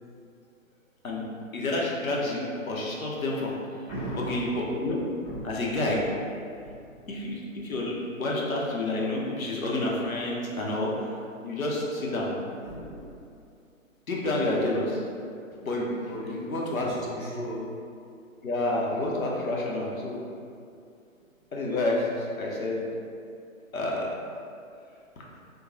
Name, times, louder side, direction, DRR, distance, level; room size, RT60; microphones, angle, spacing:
voice 1, 1.0-3.6 4.2-5.0 5.4-6.0 7.1-11.2 11.4-12.3 14.1-15.0 15.6-16.9 18.4-20.2 21.5-22.8 23.7-24.1, left 2 dB, 80° left, -3 dB, 0.7 m, -29 dB
voice 2, 3.9-4.6 5.2-6.0 6.5-7.1 12.6-13.1 16.0-17.8, equal, 5° right, -20 dB, 0.6 m, -38 dB
2.9 x 2.1 x 2.6 m, 2.5 s
figure-of-eight pair, 125°, 41 cm